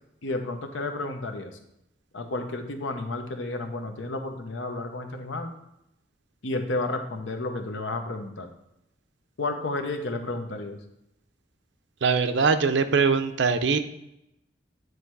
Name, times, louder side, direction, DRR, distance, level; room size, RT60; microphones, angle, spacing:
voice 1, 0.2-1.6 2.1-5.5 6.4-8.5 9.4-10.8, left 2 dB, 85° left, 5 dB, 0.9 m, -31 dB
voice 2, 12.0-13.8, right 5 dB, 70° right, 9 dB, 0.5 m, -22 dB
9.3 x 3.3 x 4.6 m, 0.85 s
head